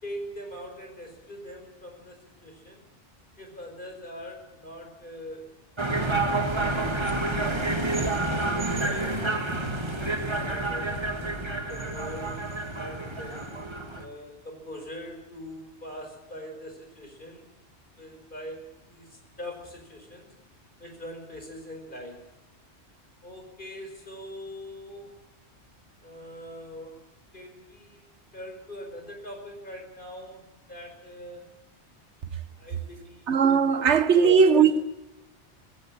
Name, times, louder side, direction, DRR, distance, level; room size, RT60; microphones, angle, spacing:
voice 1, 0.0-2.8 3.4-5.6 6.1-9.5 10.1-11.3 11.7-12.5 12.7-13.4 13.9-17.4 18.0-20.3 20.8-22.3 23.2-25.2 26.0-27.0 27.3-28.1 28.3-31.5 32.5-33.4 33.8-34.8, equal, 45° left, 5.2 m, -42 dB
sound 1, 5.8-14.1, right 2 dB, 25° right, 2.1 m, -29 dB
voice 2, 33.3-34.8, right 6 dB, 85° right, 1.4 m, -19 dB
19.0 x 17.0 x 8.7 m
omnidirectional pair, 1.1 m